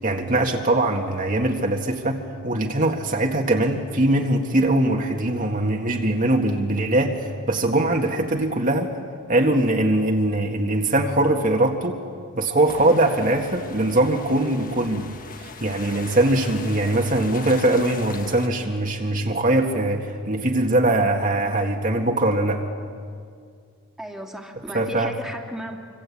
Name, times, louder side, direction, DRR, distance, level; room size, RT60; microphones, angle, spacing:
voice 1, 0.0-8.9 9.3-12.0 12.4-15.1 15.4-22.6 24.7-25.1, right 1 dB, 35° right, 1 dB, 1.8 m, -21 dB
sound 1, 12.6-18.5, left 4 dB, 40° left, 1.5 m, -40 dB
voice 2, 24.0-25.8, equal, ahead, 1 dB, 2.4 m, -35 dB
27.0 x 25.5 x 8.6 m, 2.2 s
head